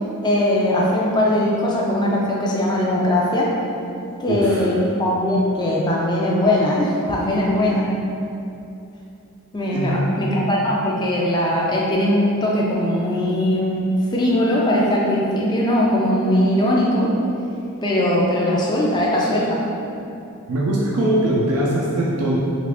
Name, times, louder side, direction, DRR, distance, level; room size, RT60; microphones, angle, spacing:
voice 1, 0.2-3.5 4.2-7.9 9.5-17.1 17.8-19.6, left 1 dB, 20° left, -4 dB, 0.3 m, -20 dB
voice 2, 4.3-4.7 7.7-7.9 9.7-10.1 20.5-22.4, right 1 dB, 85° right, -4 dB, 0.4 m, -21 dB
3.0 x 2.4 x 3.4 m, 2.7 s
head